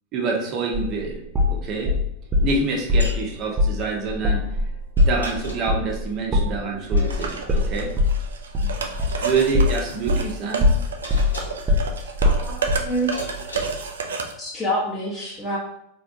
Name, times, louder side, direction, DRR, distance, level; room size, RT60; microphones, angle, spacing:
voice 1, 0.1-1.2 1.4-1.9 2.4-4.4 5.0-7.9 8.6-8.8 9.1-10.7, right 4 dB, 35° right, -1 dB, 1.2 m, -26 dB
sound 1, 0.7-2.5 2.9-3.2 3.6-3.8 4.1-10.3 10.6-12.9, left 2 dB, 20° right, 0.7 m, -21 dB
sound 2, 3.0-3.2 5.0-5.8 6.9-7.7 9.0-9.6 11.0-11.7 13.1-13.9, right 1 dB, 80° left, 1.6 m, -36 dB
sound 3, 7.1-14.3, right 5 dB, 65° right, 0.6 m, -31 dB
voice 2, 12.4-13.2 14.4-15.6, equal, 15° left, -6 dB, 1.1 m, -27 dB
4.7 x 3.4 x 2.6 m, 0.79 s
figure-of-eight pair, 90°, 0 cm